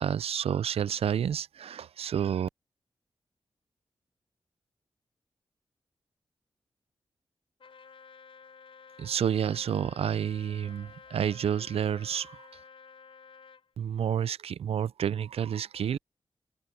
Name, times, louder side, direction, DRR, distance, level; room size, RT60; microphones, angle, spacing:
voice 1, 0.0-2.5 9.0-12.5 13.8-16.0, right 9 dB, 85° right, 0.4 m, -29 dB
Trumpet, 7.6-13.7, left 5 dB, 65° left, 4.7 m, -52 dB
wide cardioid pair, 95°, 10 cm